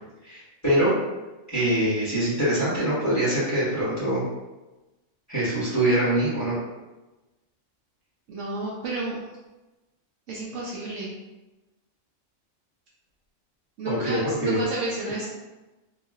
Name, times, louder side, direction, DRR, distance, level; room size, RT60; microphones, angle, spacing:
voice 1, 0.2-0.9 1.5-4.2 5.3-6.6 13.9-14.6, right 1 dB, 15° left, -12 dB, 1.2 m, -24 dB
voice 2, 8.3-9.2 10.3-11.2 13.8-15.3, right 2 dB, 70° right, -4 dB, 0.8 m, -31 dB
3.0 x 2.7 x 2.3 m, 1.1 s
omnidirectional pair, 1.4 m